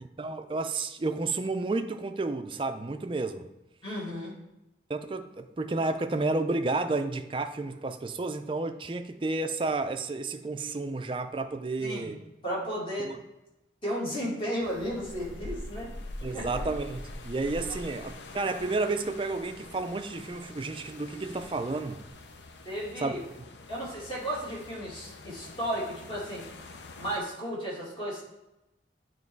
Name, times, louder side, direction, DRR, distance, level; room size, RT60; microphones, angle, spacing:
voice 1, 0.2-3.5 4.9-12.2 13.0-13.2 16.2-22.0 23.0-23.1, right 3 dB, 30° right, 8 dB, 0.4 m, -31 dB
voice 2, 3.8-4.3 11.8-12.1 12.4-13.1 13.8-15.9 16.3-16.5 17.7-18.0 22.6-23.2 23.7-26.5 27.0-28.2, equal, 30° left, -5 dB, 2.1 m, -34 dB
sound 1, 14.6-27.2, left 2 dB, 75° left, 0.6 m, -44 dB
9.3 x 3.2 x 4.6 m, 0.94 s
head